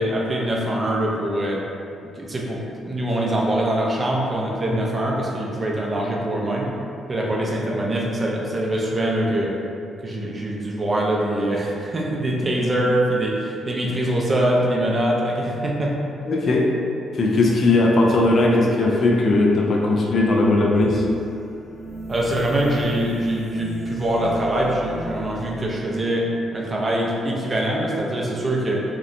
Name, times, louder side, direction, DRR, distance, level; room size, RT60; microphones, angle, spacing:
voice 1, 0.0-1.6 2.2-6.7 7.1-9.5 10.0-15.9 22.1-28.8, right 1 dB, 30° right, -3 dB, 0.4 m, -23 dB
voice 2, 16.3-16.8 17.1-21.1, left 2 dB, 50° left, -1 dB, 0.3 m, -18 dB
sound 1, 20.7-26.0, left 1 dB, 80° left, 1.4 m, -38 dB
2.8 x 2.0 x 2.5 m, 2.6 s
cardioid pair, 90°, 0 cm